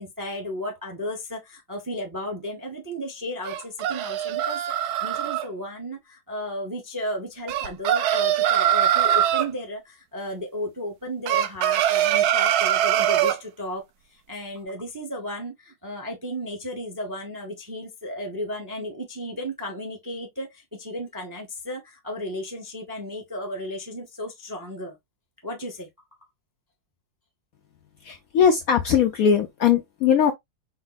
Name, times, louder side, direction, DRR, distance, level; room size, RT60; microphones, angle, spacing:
voice 1, 0.0-13.8 14.1-25.0 25.4-25.9, equal, 20° right, 0.5 m, -34 dB
sound 1, 3.4-5.4 7.5-9.5 11.3-13.4, right 11 dB, 70° right, 1.0 m, -22 dB
voice 2, 28.0-30.3, left 7 dB, 70° left, 0.8 m, -20 dB
5.3 x 2.0 x 4.0 m
omnidirectional pair, 2.0 m